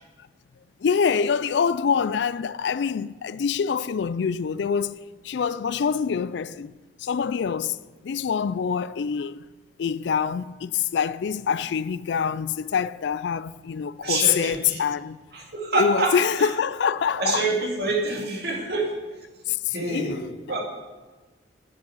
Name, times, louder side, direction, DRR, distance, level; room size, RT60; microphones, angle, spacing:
voice 1, 0.8-6.7 7.0-9.4 9.8-15.2 15.7-17.5 19.5-20.2, left 6 dB, 65° left, 0.3 m, -25 dB
voice 2, 14.0-14.8 15.3-16.5 17.2-18.9 19.7-20.6, right 3 dB, 55° right, 2.4 m, -27 dB
11.0 x 7.3 x 7.8 m
head